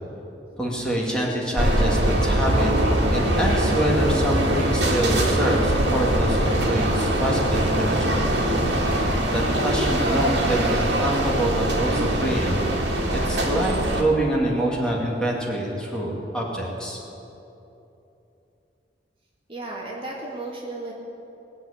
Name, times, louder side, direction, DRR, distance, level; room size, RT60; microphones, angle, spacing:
voice 1, 0.6-2.7 3.1-8.2 9.3-12.6 13.1-17.0, right 1 dB, 5° left, -4 dB, 2.5 m, -25 dB
sound 1, 1.6-14.0, right 1 dB, 75° right, 2.1 m, -22 dB
voice 2, 19.5-20.9, right 2 dB, 30° right, -3 dB, 2.1 m, -34 dB
21.0 x 7.8 x 8.5 m, 2.9 s
head